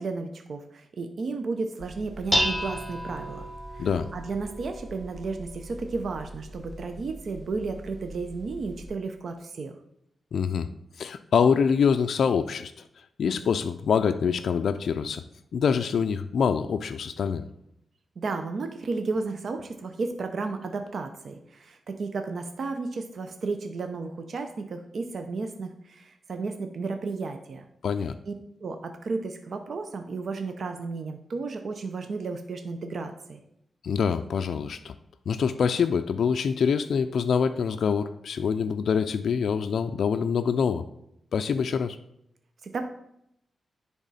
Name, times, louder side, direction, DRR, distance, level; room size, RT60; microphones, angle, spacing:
voice 1, 0.0-3.5 3.7-9.7 18.2-27.6 28.3-28.4 28.6-33.4 42.6-42.8, right 4 dB, 60° right, 6 dB, 0.6 m, -33 dB
Dishes pots and pans, 1.8-8.9, equal, ahead, 0.6 m, -34 dB
voice 2, 10.3-10.7 11.0-12.7 13.2-15.2 15.5-17.5 27.8-28.1 33.8-34.9 35.3-40.8 41.3-42.0, left 6 dB, 70° left, 7 dB, 0.3 m, -25 dB
10.0 x 3.5 x 4.1 m, 0.77 s
wide cardioid pair, 115°, 0 cm